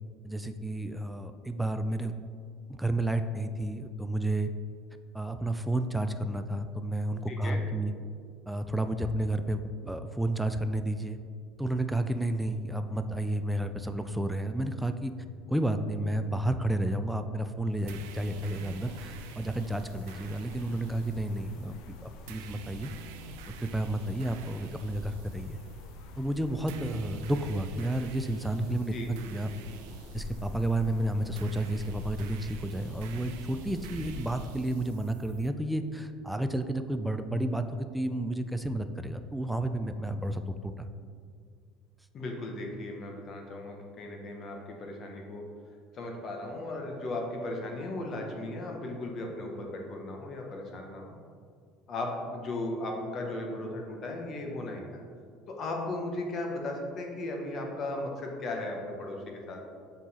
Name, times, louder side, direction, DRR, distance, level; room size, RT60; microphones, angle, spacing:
voice 1, 0.2-2.1 2.7-4.5 5.1-7.9 8.5-11.2 11.6-15.1 15.5-21.8 22.0-22.9 23.6-25.6 26.2-29.5 30.1-40.9, right 1 dB, 5° right, 8 dB, 0.3 m, -31 dB
voice 2, 7.3-7.6 28.9-29.1 42.1-45.4 45.9-51.2 51.9-54.8 55.5-59.6, left 2 dB, 40° left, 1 dB, 1.1 m, -36 dB
sound 1, 17.7-34.7, left 2 dB, 70° left, 0.5 m, -46 dB
sound 2, 17.9-35.5, right 7 dB, 85° right, 0.4 m, -48 dB
7.3 x 3.9 x 4.2 m, 2.2 s
cardioid pair, 125°, 0 cm